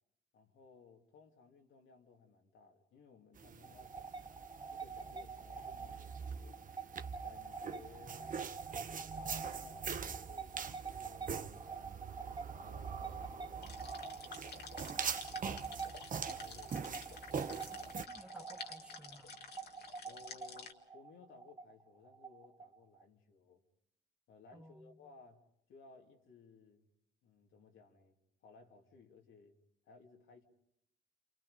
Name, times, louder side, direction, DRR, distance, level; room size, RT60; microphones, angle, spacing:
voice 1, 0.3-4.3 4.7-6.6 7.2-8.4 9.1-11.3 12.1-13.8 15.3-15.6 16.3-16.7 20.0-23.6 24.3-26.9 27.2-28.2 28.4-29.6 29.8-30.4, left 4 dB, 80° left, 2.8 m, -60 dB
sound 1, 3.3-18.1, right 6 dB, 40° right, 1.1 m, -44 dB
sound 2, 3.6-23.0, right 5 dB, 20° right, 1.0 m, -47 dB
sound 3, 13.6-20.7, left 5 dB, 55° left, 2.1 m, -51 dB
voice 2, 17.7-19.4 24.5-25.0, equal, 5° right, 2.3 m, -58 dB
28.5 x 28.0 x 5.1 m
cardioid pair, 90°, 20 cm